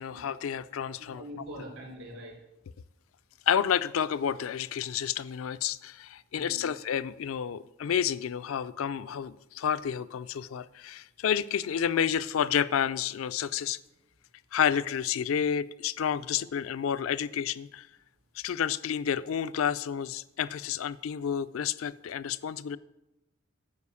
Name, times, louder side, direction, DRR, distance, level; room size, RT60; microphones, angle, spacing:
voice 1, 0.0-1.2 3.5-13.8 14.5-17.9 18.4-22.8, left 8 dB, 70° left, 14 dB, 0.4 m, -30 dB
voice 2, 1.0-2.4 6.3-6.7 11.8-11.9, equal, 70° right, -2 dB, 3.8 m, -44 dB
9.7 x 5.0 x 6.9 m, 0.93 s
head